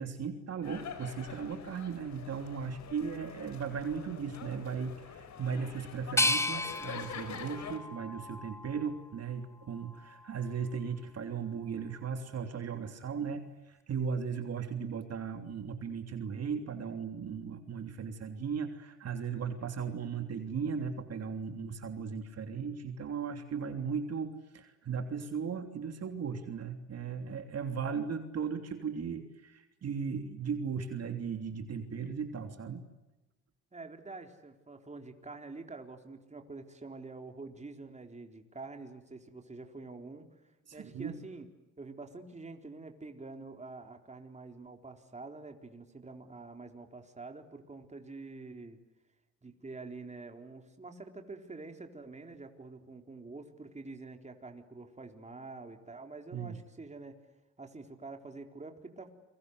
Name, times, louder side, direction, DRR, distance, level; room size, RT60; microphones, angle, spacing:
voice 1, 0.0-32.8 40.7-41.1 56.3-56.6, right 6 dB, 55° right, 6 dB, 3.3 m, -37 dB
sound 1, 0.6-7.8, left 7 dB, 65° left, 4.7 m, -46 dB
sound 2, 6.2-9.1 9.6-10.5, left 2 dB, 10° left, 1.6 m, -34 dB
voice 2, 33.7-41.5 41.8-48.8 49.4-57.2 57.6-59.1, right 3 dB, 25° right, 5 dB, 4.0 m, -47 dB
29.5 x 23.5 x 8.0 m, 1.0 s
cardioid pair, 90°, 30 cm